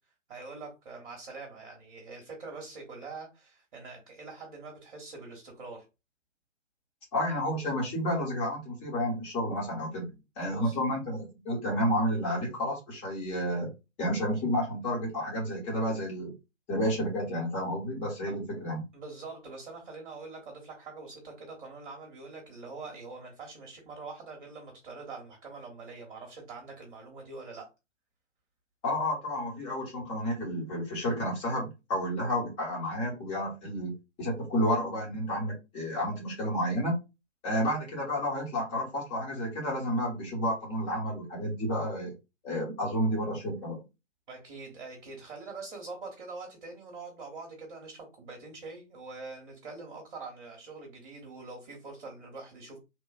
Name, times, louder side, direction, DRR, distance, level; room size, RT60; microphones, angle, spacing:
voice 1, 0.3-5.8 10.0-10.8 16.0-16.1 18.3-18.4 18.9-27.7 44.3-52.8, right 3 dB, 40° right, 0 dB, 1.0 m, -44 dB
voice 2, 7.1-10.1 10.4-13.7 14.0-16.3 16.7-18.8 28.8-33.9 34.2-37.0 37.4-42.1 42.4-43.8, equal, 15° left, -3 dB, 1.1 m, -31 dB
3.0 x 2.4 x 2.4 m, 0.26 s
figure-of-eight pair, 130°, 38 cm